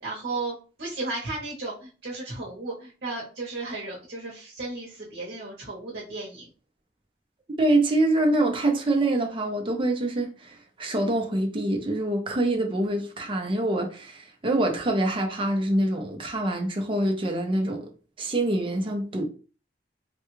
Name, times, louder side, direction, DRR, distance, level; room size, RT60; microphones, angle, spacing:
voice 1, 0.0-6.5, right 2 dB, 65° right, 0.9 m, -34 dB
voice 2, 7.6-17.9 18.2-19.2, right 1 dB, 30° right, 0.6 m, -25 dB
3.3 x 2.3 x 3.1 m
head